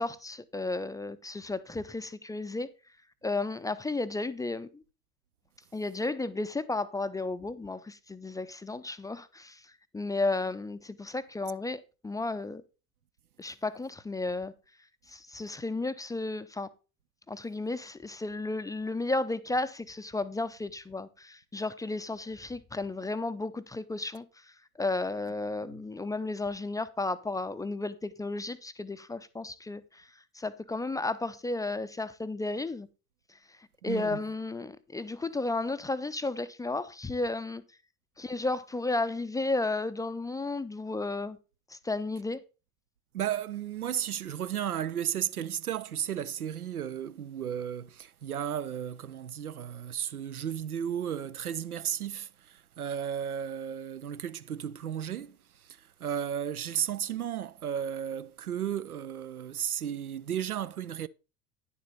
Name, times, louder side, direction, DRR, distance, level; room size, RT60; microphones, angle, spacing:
voice 1, 0.0-2.7 3.2-4.8 5.7-9.6 9.9-12.6 13.4-14.5 15.1-16.7 17.3-24.2 24.8-30.1 30.3-32.9 33.8-37.6 38.2-41.4 41.7-42.4, left 2 dB, 10° left, 0.5 m, -33 dB
voice 2, 33.8-34.2 43.1-61.1, right 9 dB, 85° right, 0.5 m, -34 dB
10.0 x 7.0 x 4.1 m
figure-of-eight pair, 65°, 44 cm